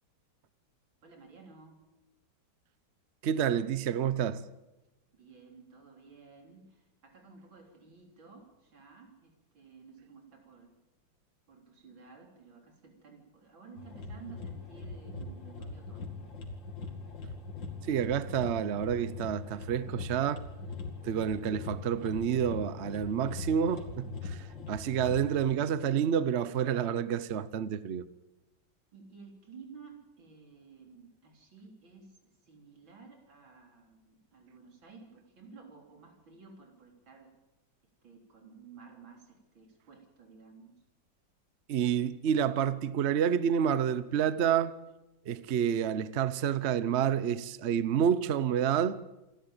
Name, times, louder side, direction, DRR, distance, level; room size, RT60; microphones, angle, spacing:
voice 1, 1.0-1.8 5.1-10.7 11.5-16.3 28.9-37.3 38.0-40.8, right 5 dB, 90° right, 4.5 m, -54 dB
voice 2, 3.2-4.4 17.8-20.4 21.0-28.1 41.7-44.7 45.3-49.0, right 8 dB, 50° right, 0.8 m, -29 dB
sound 1, 13.8-25.4, left 3 dB, 70° left, 3.0 m, -41 dB
27.5 x 12.0 x 8.9 m
omnidirectional pair, 2.1 m